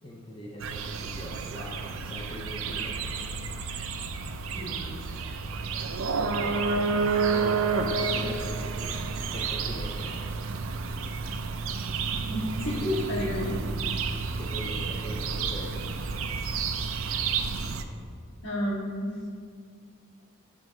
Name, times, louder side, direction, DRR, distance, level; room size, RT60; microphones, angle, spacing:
voice 1, 0.0-3.2 6.2-7.7 8.0-9.0 9.3-10.2 14.4-16.3, equal, 25° left, -3 dB, 0.6 m, -41 dB
sound 1, 0.6-17.8, right 4 dB, 75° right, 0.5 m, -30 dB
voice 2, 4.5-4.9 12.3-13.6 18.4-19.1, left 1 dB, 65° left, -4 dB, 1.8 m, -30 dB
10.0 x 3.6 x 4.9 m, 2.2 s
head